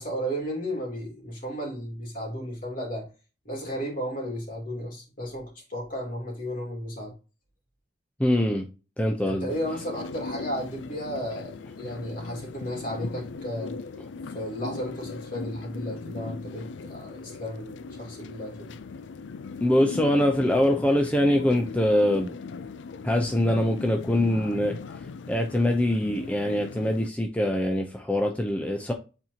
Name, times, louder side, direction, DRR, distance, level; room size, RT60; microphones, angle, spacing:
voice 1, 0.0-3.1 3.4-7.1 9.2-13.8 14.3-18.7, equal, 50° left, 3.1 m, -34 dB
voice 2, 8.2-8.7 9.0-9.5 19.6-22.3 23.0-24.8 25.3-28.9, left 1 dB, 10° left, 0.6 m, -23 dB
sound 1, 9.5-27.1, left 4 dB, 80° left, 0.4 m, -39 dB
8.2 x 4.4 x 2.8 m
head